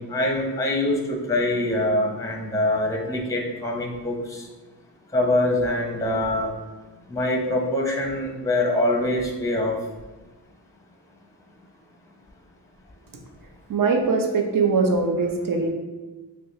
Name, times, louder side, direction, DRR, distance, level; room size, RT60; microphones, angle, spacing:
voice 1, 0.0-4.4 5.1-6.5 7.1-9.7, left 1 dB, 10° left, 0 dB, 0.6 m, -24 dB
voice 2, 13.7-15.7, right 4 dB, 55° right, 3 dB, 0.7 m, -21 dB
3.3 x 3.1 x 2.7 m, 1.2 s
cardioid pair, 45°, 40 cm